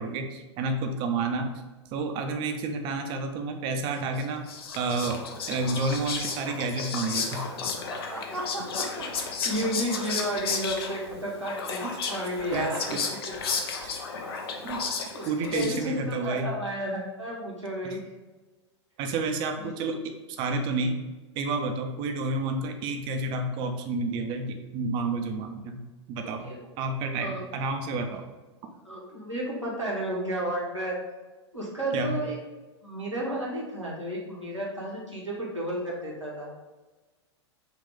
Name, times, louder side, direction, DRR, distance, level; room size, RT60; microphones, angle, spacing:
voice 1, 0.0-1.5 1.9-4.4 4.7-5.2 5.5-7.4 9.5-9.6 10.0-10.1 11.8-11.9 12.5-13.0 13.8-13.9 14.6-14.8 15.3-16.5 17.8-18.0 19.0-21.0 21.4-25.8 26.1-26.5 26.8-28.2 31.9-32.2, right 3 dB, 35° right, 5 dB, 0.5 m, -30 dB
Whispering, 4.2-16.1, left 5 dB, 55° left, 0.6 m, -33 dB
voice 2, 7.9-9.0 9.4-13.2 13.5-13.6 15.1-18.0 19.6-19.7 26.4-26.6 27.2-27.4 28.8-31.0 31.5-32.4 32.8-36.5, right 1 dB, 90° right, -6 dB, 1.3 m, -32 dB
5.4 x 2.4 x 3.7 m, 1.2 s
figure-of-eight pair, 95°, 15 cm